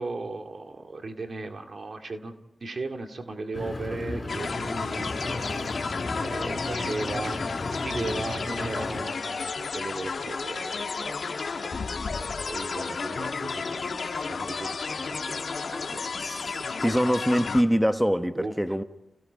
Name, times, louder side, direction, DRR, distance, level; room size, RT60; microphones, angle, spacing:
voice 1, 0.0-2.4 2.6-7.4 7.7-16.7 18.3-18.5, right 3 dB, 65° right, 2.2 m, -37 dB
Engine, 3.5-9.0, left 2 dB, 40° left, 4.4 m, -35 dB
sound 1, 4.3-17.6, left 4 dB, 75° left, 1.4 m, -32 dB
voice 2, 16.2-16.5 16.8-18.8, equal, 5° right, 1.2 m, -24 dB
29.5 x 17.0 x 5.3 m
cardioid pair, 45°, 0 cm